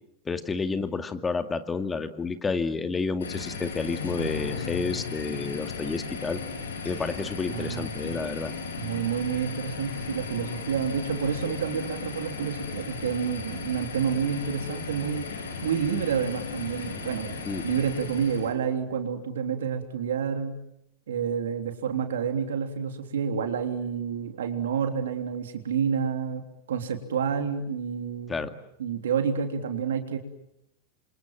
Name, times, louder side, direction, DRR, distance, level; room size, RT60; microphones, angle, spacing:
voice 1, 0.3-6.4 6.8-8.5 17.5-17.6 28.3-28.5, left 4 dB, 20° left, 8 dB, 2.2 m, -30 dB
sound 1, 3.2-18.5, left 5 dB, 80° left, 5.4 m, -36 dB
voice 2, 7.5-8.2 8.8-15.3 15.6-17.4 17.6-20.5 21.1-26.4 26.7-28.5 28.8-30.2, right 7 dB, 75° right, 6 dB, 3.4 m, -29 dB
28.0 x 26.0 x 7.7 m, 0.79 s
hypercardioid pair, 90°, 0 cm